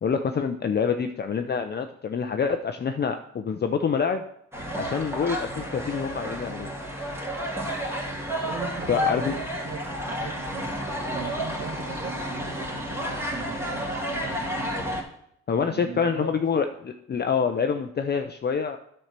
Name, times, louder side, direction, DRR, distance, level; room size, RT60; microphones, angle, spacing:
voice 1, 0.0-4.2 4.8-6.8 8.9-9.4 15.5-18.8, left 6 dB, 35° left, 6 dB, 0.6 m, -26 dB
sound 1, 4.5-15.0, equal, 10° right, 2.4 m, -31 dB
voice 2, 8.4-10.9 11.1-14.8 15.6-16.4, right 5 dB, 50° right, 4 dB, 1.7 m, -39 dB
9.7 x 4.5 x 6.7 m, 0.73 s
cardioid pair, 90°, 30 cm